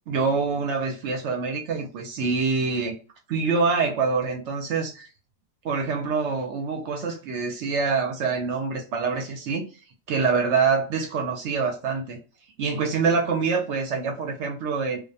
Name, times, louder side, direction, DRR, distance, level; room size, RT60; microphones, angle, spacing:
voice 1, 0.1-2.9 3.3-5.1 5.6-9.6 10.1-12.2 12.6-15.0, right 5 dB, 65° right, 0.8 m, -25 dB
2.3 x 2.1 x 2.6 m
omnidirectional pair, 1.4 m